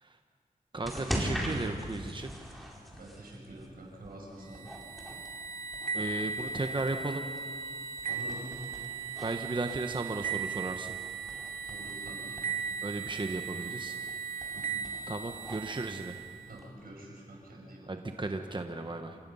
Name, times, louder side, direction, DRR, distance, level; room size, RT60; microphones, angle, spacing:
voice 1, 0.7-2.3 5.9-7.2 9.2-10.9 12.8-14.0 15.1-16.2 17.9-19.2, right 2 dB, 35° right, 5 dB, 1.1 m, -35 dB
sound 1, 0.8-16.6, equal, ahead, 4.6 m, -42 dB
voice 2, 2.9-4.7 8.1-8.5 11.7-12.5 14.5-14.6 16.5-17.9, right 1 dB, 85° right, -2 dB, 6.0 m, -47 dB
sound 2, 4.5-16.6, right 6 dB, 70° right, 2.7 m, -38 dB
28.0 x 16.5 x 5.6 m, 2.1 s
cardioid pair, 55°, 15 cm